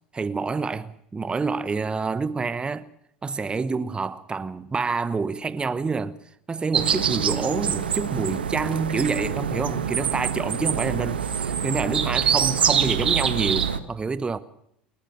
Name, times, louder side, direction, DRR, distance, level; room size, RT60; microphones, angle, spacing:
voice 1, 0.1-2.9 3.2-6.2 6.5-14.4, right 4 dB, 20° right, 1.1 m, -27 dB
sound 1, 6.7-13.8, right 7 dB, 75° right, 1.4 m, -25 dB
29.0 x 14.0 x 7.5 m
figure-of-eight pair, 70°, 5 cm